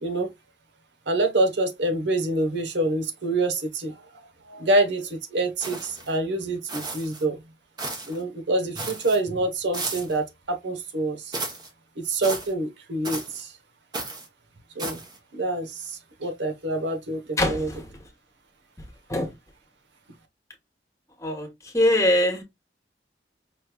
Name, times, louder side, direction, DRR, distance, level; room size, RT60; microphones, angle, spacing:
voice 1, 0.0-0.3 1.1-4.0 4.5-7.4 8.1-11.3 12.0-13.5 14.7-15.0 15.3-17.7, right 2 dB, 90° right, 1.1 m, -26 dB
sound 1, 5.6-6.1 6.7-7.2 7.8-8.2 8.7-9.2 9.7-10.2 11.3-11.7 12.2-12.5 13.0-13.4 13.9-14.3 14.8-15.2, right 3 dB, 25° right, 1.0 m, -34 dB
voice 2, 17.4-17.9 19.1-19.3 21.2-22.4, left 1 dB, 15° left, 1.2 m, -23 dB
5.2 x 3.2 x 2.3 m
head